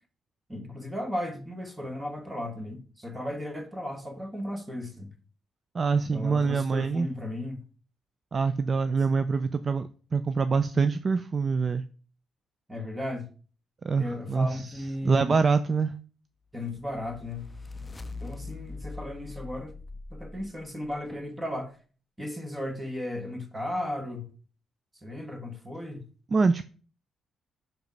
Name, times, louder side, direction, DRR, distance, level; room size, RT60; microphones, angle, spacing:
voice 1, 0.5-5.1 6.1-7.6 12.7-13.3 14.0-15.3 16.5-17.5 18.2-19.8 20.1-21.7 22.2-24.3 25.0-26.1, left 1 dB, 10° right, 1.5 m, -35 dB
voice 2, 5.7-7.1 8.3-11.8 13.8-15.9 26.3-26.7, right 4 dB, 40° right, 0.4 m, -25 dB
sound 1, 16.7-20.9, left 3 dB, 20° left, 0.5 m, -42 dB
6.0 x 5.1 x 5.3 m
cardioid pair, 90°, 0 cm